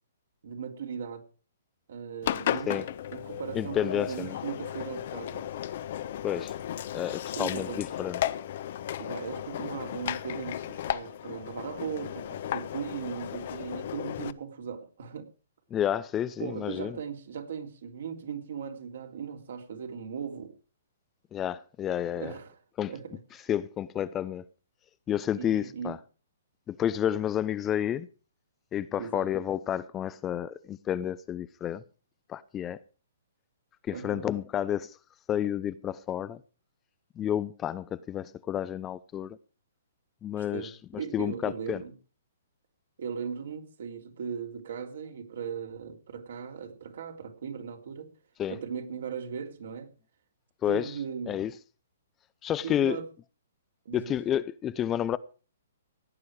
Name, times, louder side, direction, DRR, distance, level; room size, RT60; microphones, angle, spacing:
voice 1, 0.4-1.3 1.9-5.5 7.3-7.8 9.0-15.3 16.4-20.5 22.1-22.6 22.9-23.5 25.4-25.9 29.0-29.3 33.9-34.2 40.3-41.9 43.0-48.1 48.5-49.9 50.7-51.4 52.6-53.1 53.8-54.1, right 7 dB, 65° right, 3.2 m, -38 dB
Engine, 2.2-14.3, left 11 dB, 55° left, 1.0 m, -35 dB
voice 2, 3.5-4.4 6.2-6.5 6.9-8.2 15.7-17.0 21.3-22.3 22.8-22.9 23.5-24.4 25.1-26.0 26.7-28.1 28.7-31.8 32.3-32.8 33.8-35.0 35.3-36.4 37.2-39.4 40.2-41.8 48.4-48.6 50.6-51.0 51.3-51.5 52.4-53.0 53.9-55.2, left 10 dB, 20° left, 0.6 m, -30 dB
16.5 x 9.5 x 4.8 m
hypercardioid pair, 130°, 0 cm